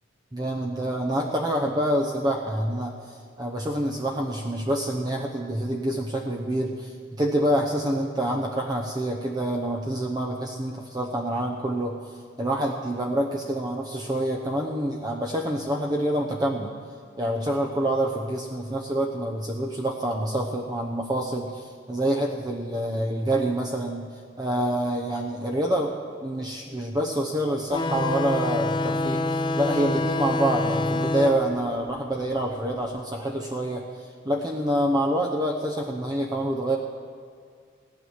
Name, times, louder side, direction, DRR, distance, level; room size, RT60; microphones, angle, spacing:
voice 1, 0.3-12.0 12.4-16.7 17.2-24.1 24.4-25.9 26.2-33.8 34.2-36.8, right 1 dB, 20° right, 0 dB, 0.8 m, -27 dB
sound 1, 27.7-32.9, left 2 dB, 25° left, 0.5 m, -27 dB
17.5 x 6.2 x 9.6 m, 2.2 s
head